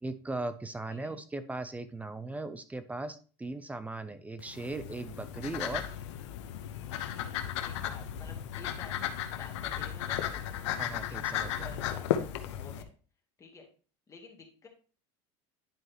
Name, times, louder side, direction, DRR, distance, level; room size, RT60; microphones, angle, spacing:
voice 1, 0.0-5.8 10.8-11.7, right 2 dB, 10° right, 12 dB, 0.6 m, -38 dB
sound 1, 4.4-12.8, left 10 dB, 85° left, 0.8 m, -35 dB
voice 2, 7.6-10.5 11.1-11.2 11.4-12.9 13.4-13.7 14.1-14.7, left 4 dB, 20° left, 1 dB, 2.1 m, -51 dB
10.5 x 4.7 x 2.9 m, 0.38 s
supercardioid pair, 120°, 15 cm